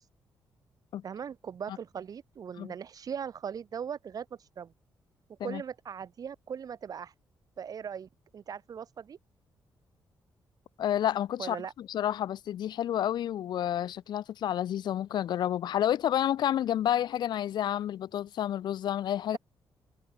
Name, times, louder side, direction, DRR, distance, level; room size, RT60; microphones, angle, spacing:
voice 1, 1.0-4.7 5.4-7.1 7.6-9.2 11.4-11.7, right 7 dB, 50° right, 2.2 m, -39 dB
voice 2, 10.8-19.4, left 11 dB, 65° left, 0.4 m, -30 dB
cardioid pair, 135°, 8 cm